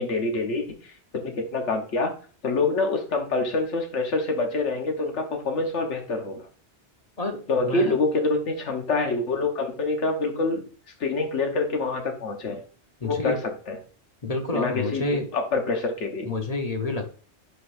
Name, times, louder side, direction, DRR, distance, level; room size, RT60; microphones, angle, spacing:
voice 1, 0.0-2.1 2.4-6.5 7.5-10.6 11.0-12.6 13.0-13.4 13.7-13.8 14.5-16.3, left 3 dB, 90° left, 3 dB, 1.5 m, -26 dB
voice 2, 7.2-8.0 13.0-13.4 14.2-15.3 16.2-17.1, left 2 dB, 35° left, 4 dB, 1.0 m, -29 dB
9.9 x 4.0 x 2.6 m, 0.39 s
omnidirectional pair, 1.2 m